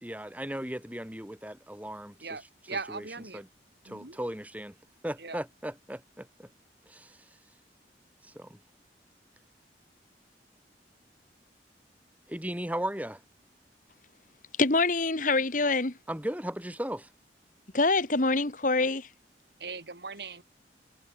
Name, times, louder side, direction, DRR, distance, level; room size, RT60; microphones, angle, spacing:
voice 1, 0.0-2.1 2.9-3.0 3.3-3.5 3.8-4.7 5.0-6.5 6.9-7.2 8.3-8.6 12.3-13.2 16.1-17.1, right 1 dB, 10° right, 3.2 m, -36 dB
voice 2, 2.2-3.4 3.8-4.2 5.2-5.4 19.6-20.4, right 4 dB, 65° right, 2.7 m, -39 dB
voice 3, 14.6-16.0 17.7-19.1, left 3 dB, 50° left, 1.8 m, -25 dB
head